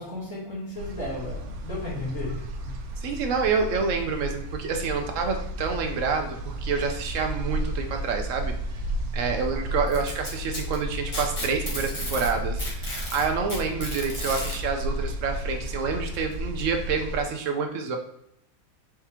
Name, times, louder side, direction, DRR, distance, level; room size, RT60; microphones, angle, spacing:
voice 1, 0.0-2.7, left 2 dB, 65° left, -7 dB, 1.9 m, -34 dB
sound 1, 0.8-17.2, right 1 dB, 90° right, 1.1 m, -33 dB
voice 2, 3.0-8.5 9.1-18.0, right 5 dB, 65° right, 4 dB, 1.0 m, -28 dB
Packing tape duct tape, 9.9-12.3 12.6-14.6 15.7-15.8 16.3-16.4 17.3-17.4, left 1 dB, 25° left, 1.0 m, -34 dB
4.4 x 3.6 x 2.9 m, 0.75 s
omnidirectional pair, 1.5 m